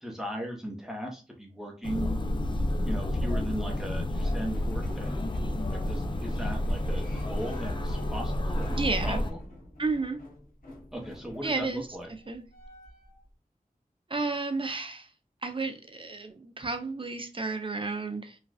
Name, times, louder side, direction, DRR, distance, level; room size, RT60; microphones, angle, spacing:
voice 1, 0.0-2.1 2.9-5.2 5.7-9.4 10.9-12.1, equal, 5° right, 1 dB, 0.8 m, -37 dB
sound 1, 1.8-9.3, left 1 dB, 35° left, 0.4 m, -30 dB
sound 2, 4.1-13.2, left 1 dB, 80° left, 1.0 m, -44 dB
voice 2, 8.8-9.2 9.8-10.2 11.4-11.9 12.3-12.4 14.1-15.1 15.4-18.4, right 3 dB, 35° right, 6 dB, 0.6 m, -32 dB
3.2 x 2.4 x 2.3 m, 0.35 s
wide cardioid pair, 65°, 14 cm